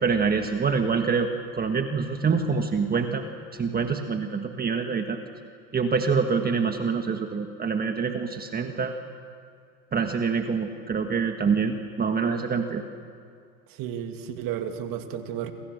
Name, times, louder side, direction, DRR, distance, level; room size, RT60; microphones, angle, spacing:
voice 1, 0.0-3.3 3.5-5.2 5.7-8.9 9.9-12.8, right 5 dB, 20° right, 5 dB, 1.6 m, -26 dB
voice 2, 13.7-15.5, right 9 dB, 50° right, 6 dB, 2.8 m, -33 dB
27.5 x 26.0 x 6.7 m, 2.3 s
supercardioid pair, 110°, 45 cm